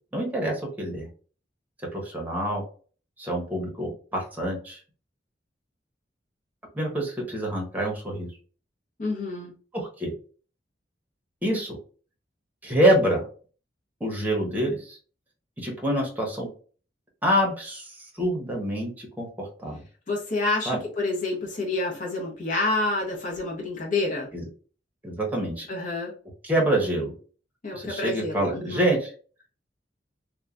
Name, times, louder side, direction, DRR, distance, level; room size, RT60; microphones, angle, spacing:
voice 1, 0.1-1.1 1.9-2.6 3.2-4.8 6.7-8.3 9.7-10.1 11.4-11.8 12.6-13.2 14.0-15.0 15.6-16.5 17.2-17.9 18.2-19.8 20.7-20.8 24.3-24.4 25.0-25.7 26.4-27.1 27.7-29.1, right 1 dB, 10° right, -1 dB, 0.8 m, -26 dB
voice 2, 9.0-9.5 20.1-24.3 25.7-26.1 27.6-28.9, left 2 dB, 45° left, -1 dB, 0.9 m, -28 dB
3.0 x 2.1 x 2.4 m, 0.40 s
head